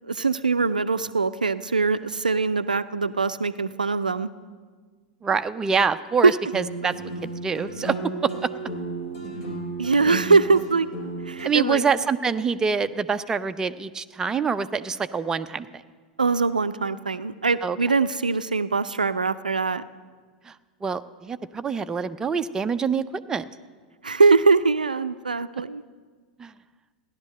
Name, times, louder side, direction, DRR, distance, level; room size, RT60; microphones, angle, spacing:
voice 1, 0.0-4.3 6.2-6.3 9.8-10.9 11.3-11.8 16.2-19.8 24.0-25.8, right 4 dB, 80° right, 14 dB, 0.4 m, -22 dB
voice 2, 5.2-8.0 8.2-8.5 11.4-15.7 17.6-17.8 20.5-20.6 20.8-23.5 26.4-26.5, right 5 dB, 15° right, 10 dB, 0.5 m, -26 dB
sound 1, 6.5-11.5, right 2 dB, 50° left, 3.7 m, -33 dB
16.0 x 11.0 x 6.6 m, 1.5 s
figure-of-eight pair, 90°, 4 cm